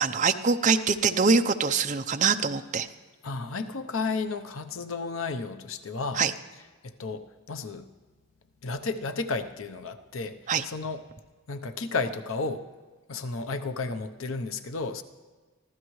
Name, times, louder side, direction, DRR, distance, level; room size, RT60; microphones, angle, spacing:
voice 1, 0.0-2.9 6.2-6.3 10.5-10.6, right 5 dB, 35° right, 7 dB, 0.6 m, -24 dB
voice 2, 3.2-6.2 6.8-7.9 8.6-10.4 10.6-11.0 11.5-12.6 13.1-15.0, left 4 dB, 85° left, 8 dB, 0.8 m, -32 dB
24.0 x 15.5 x 3.2 m, 1.4 s
head